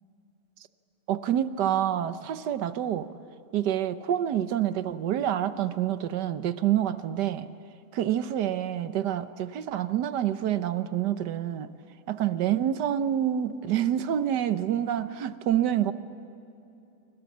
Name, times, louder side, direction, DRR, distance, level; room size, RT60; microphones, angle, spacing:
voice 1, 1.1-3.1 3.5-7.5 7.9-11.7 12.1-15.9, right 10 dB, 80° right, 12 dB, 1.5 m, -27 dB
26.0 x 26.0 x 7.3 m, 2.8 s
omnidirectional pair, 1.8 m